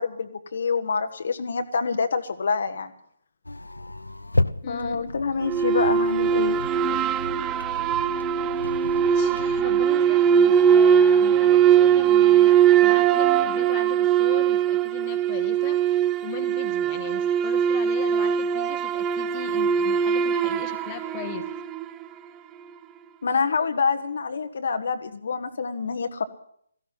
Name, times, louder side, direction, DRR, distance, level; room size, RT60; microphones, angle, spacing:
voice 1, 0.0-2.9 4.6-6.6 23.2-26.2, left 5 dB, 55° left, 7 dB, 1.3 m, -26 dB
sound 1, 3.4-9.9, left 2 dB, 85° left, 0.7 m, -32 dB
voice 2, 4.6-5.0 8.5-21.5, left 9 dB, 25° left, 6 dB, 1.3 m, -39 dB
sound 2, 5.4-22.0, right 8 dB, 15° right, 0.5 m, -21 dB
17.0 x 14.5 x 5.7 m, 0.67 s
figure-of-eight pair, 140°, 0 cm